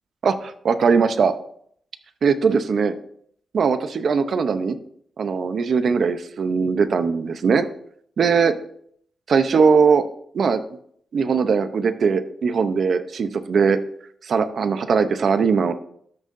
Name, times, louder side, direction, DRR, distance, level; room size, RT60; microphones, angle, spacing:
voice 1, 0.2-1.3 2.2-2.9 3.5-4.8 5.2-7.7 8.2-8.6 9.3-10.0 10.3-10.6 11.1-13.8 14.2-15.7, right 5 dB, 55° right, 11 dB, 0.6 m, -20 dB
13.0 x 6.4 x 2.6 m, 0.65 s
wide cardioid pair, 155°, 0 cm